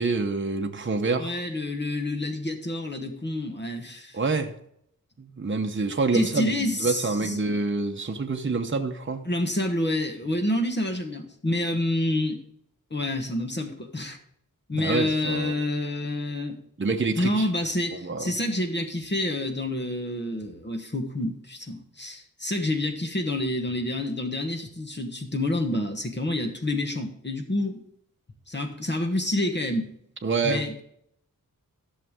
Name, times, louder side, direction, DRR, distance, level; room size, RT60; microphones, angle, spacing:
voice 1, 0.0-1.4 4.1-4.5 5.2-9.3 14.7-15.5 16.8-17.5 18.0-18.2 30.2-30.6, right 3 dB, 35° right, 0.9 m, -27 dB
voice 2, 1.2-4.2 6.1-7.4 9.2-12.4 12.9-14.2 14.7-16.6 17.2-27.8 28.5-29.9 30.4-30.8, left 1 dB, 30° left, 1.2 m, -28 dB
14.0 x 6.6 x 3.6 m
wide cardioid pair, 90°, 34 cm